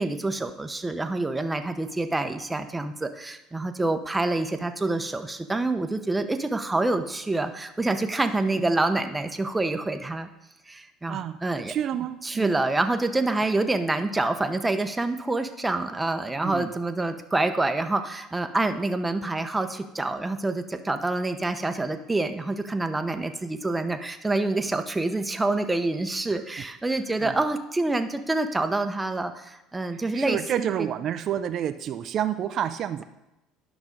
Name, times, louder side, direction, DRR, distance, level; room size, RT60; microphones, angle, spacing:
voice 1, 0.0-10.3 10.7-11.7 12.2-30.7, right 2 dB, 10° right, 8 dB, 0.8 m, -27 dB
voice 2, 11.1-12.6 16.4-16.7 27.2-27.4 30.1-33.0, right 10 dB, 50° right, 10 dB, 0.5 m, -29 dB
10.5 x 6.0 x 5.2 m, 0.93 s
supercardioid pair, 100°, 0 cm